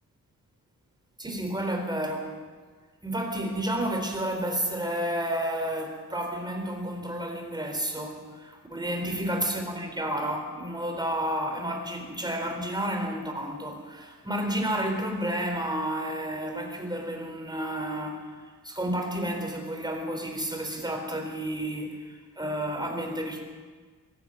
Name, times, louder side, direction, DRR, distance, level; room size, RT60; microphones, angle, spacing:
voice 1, 1.2-2.4 3.0-18.4 18.6-23.4, right 1 dB, 10° right, 3 dB, 3.9 m, -31 dB
23.0 x 13.5 x 9.1 m, 1.5 s
wide cardioid pair, 165°, 36 cm